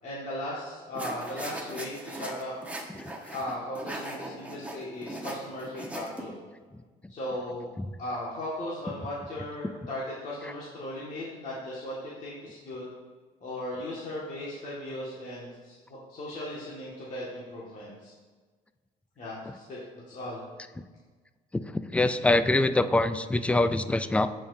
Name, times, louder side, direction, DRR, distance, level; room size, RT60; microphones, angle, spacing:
voice 1, 0.0-2.5 3.3-6.3 7.1-7.7 8.0-12.9 13.4-18.1 19.2-19.8 20.1-20.4, left 1 dB, 50° left, -7 dB, 1.8 m, -37 dB
sound 1, 1.0-6.2, right 1 dB, 10° right, 1.1 m, -39 dB
voice 2, 21.7-24.3, left 2 dB, 5° left, 11 dB, 0.3 m, -24 dB
14.0 x 5.1 x 2.7 m, 1.4 s
cardioid pair, 110°, 17 cm